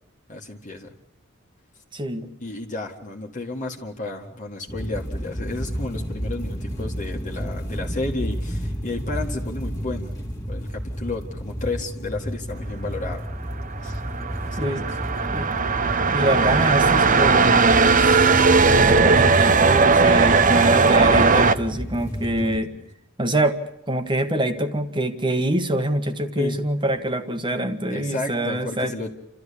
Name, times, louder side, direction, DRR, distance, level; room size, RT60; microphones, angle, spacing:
voice 1, 0.3-0.9 2.4-10.1 10.5-13.3 13.8-14.0 14.5-14.8 18.5-19.2 22.7-22.9 26.4-26.6 27.9-29.1, left 2 dB, 40° left, 0 dB, 1.9 m, -32 dB
voice 2, 1.9-2.3 14.6-14.8 15.3-15.5 16.1-18.5 18.8-22.7 23.2-23.6 23.9-28.9, right 1 dB, 25° right, 8 dB, 1.5 m, -25 dB
sound 1, 4.7-22.6, equal, 20° left, 2.2 m, -31 dB
sound 2, 13.6-21.5, right 4 dB, 40° right, 0.9 m, -17 dB
29.5 x 13.5 x 8.5 m, 0.81 s
head